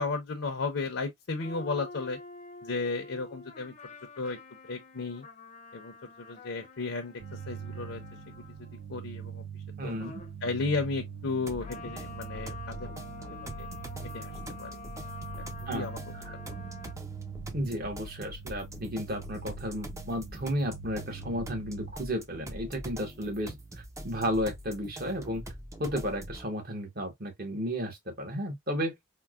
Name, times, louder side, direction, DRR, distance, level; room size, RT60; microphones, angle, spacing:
voice 1, 0.0-2.2 2.6-3.7 4.2-4.4 4.6-5.2 5.7-8.0 8.4-8.5 8.9-9.4 9.8-9.9 10.4-12.9 13.6-13.7 14.1-14.3 14.6-14.7 15.6-16.0 16.5-16.6, left 3 dB, 75° left, 0.6 m, -34 dB
sound 1, 1.4-8.9 10.0-10.4 11.6-16.9, left 3 dB, 35° left, 0.5 m, -47 dB
sound 2, 7.2-21.9, right 7 dB, 80° right, 0.4 m, -43 dB
voice 2, 9.8-10.1 15.7-15.9 16.3-16.4 17.5-23.5 24.0-25.4 25.8-29.0, equal, 45° right, 1.0 m, -33 dB
sound 3, 11.5-26.5, right 1 dB, 15° right, 0.4 m, -44 dB
4.4 x 2.1 x 2.3 m
head